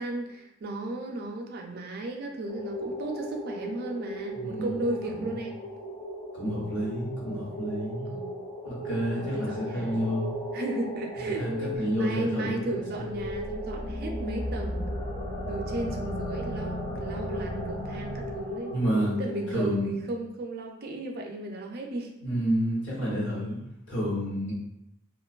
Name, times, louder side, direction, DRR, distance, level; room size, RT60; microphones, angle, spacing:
voice 1, 0.0-5.6 8.1-8.3 9.1-10.0 10.5-11.5 11.9-14.9 15.5-18.7 19.2-22.1, right 2 dB, 50° right, 2 dB, 0.4 m, -35 dB
sound 1, 2.5-19.5, equal, 20° left, 0.4 m, -38 dB
voice 2, 4.3-4.7 5.1-5.3 6.3-8.1 8.6-10.4 11.4-13.1 18.7-19.2 19.5-19.9 22.2-23.6 23.9-24.5, equal, 65° left, -6 dB, 1.0 m, -30 dB
sound 2, 13.2-18.8, equal, 45° left, 1.2 m, -35 dB
2.5 x 2.2 x 2.3 m, 0.84 s
head